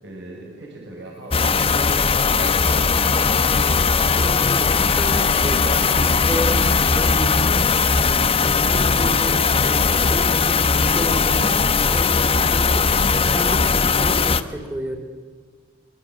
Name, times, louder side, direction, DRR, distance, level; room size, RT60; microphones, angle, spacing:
voice 1, 0.0-3.3, right 1 dB, 75° right, -1 dB, 5.9 m, -39 dB
sound 1, 1.1-7.6, left 9 dB, 70° left, 2.0 m, -36 dB
sound 2, 1.3-14.4, left 5 dB, 30° left, 1.0 m, -19 dB
voice 2, 4.1-8.0 8.7-15.0, equal, 10° right, 2 dB, 3.5 m, -31 dB
24.5 x 24.0 x 8.9 m, 1.5 s
head